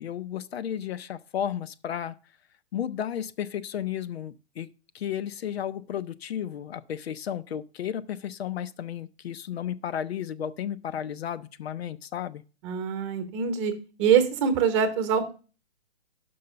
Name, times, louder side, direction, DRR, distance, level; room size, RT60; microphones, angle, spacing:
voice 1, 0.0-2.2 2.7-4.7 4.9-12.4, left 9 dB, 65° left, 0.6 m, -33 dB
voice 2, 12.6-13.7 14.0-15.3, right 7 dB, 25° right, 1.0 m, -24 dB
5.7 x 5.5 x 6.5 m
hypercardioid pair, 155°, 33 cm